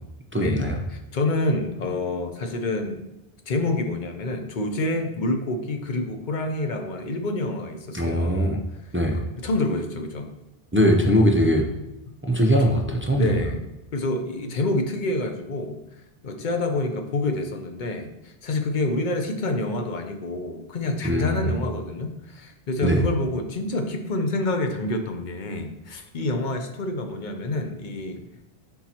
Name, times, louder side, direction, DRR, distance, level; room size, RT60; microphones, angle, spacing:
voice 1, 0.3-0.8 7.9-8.6 8.9-9.2 10.7-11.6 12.2-13.4 21.0-21.5 22.8-23.0, equal, 15° right, 1 dB, 0.5 m, -21 dB
voice 2, 0.9-3.0 3.5-8.6 9.1-10.3 12.6-12.8 13.2-15.8 16.2-28.2, left 2 dB, 50° left, 5 dB, 0.8 m, -27 dB
10.0 x 3.8 x 2.9 m, 0.96 s
omnidirectional pair, 1.0 m